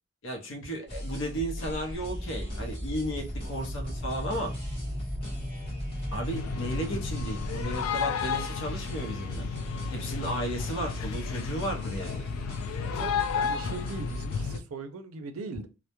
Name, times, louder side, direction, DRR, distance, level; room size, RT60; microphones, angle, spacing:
voice 1, 0.2-4.5 6.1-9.5 9.9-12.3, equal, 60° left, 0.6 m, -34 dB
sound 1, 0.9-14.6, equal, 30° left, 0.9 m, -39 dB
sound 2, 1.6-7.9, equal, 20° right, 0.8 m, -38 dB
sound 3, 6.3-14.6, left 6 dB, 85° left, 0.3 m, -33 dB
voice 2, 12.8-15.7, right 3 dB, 90° right, 0.4 m, -40 dB
2.2 x 2.0 x 2.8 m
head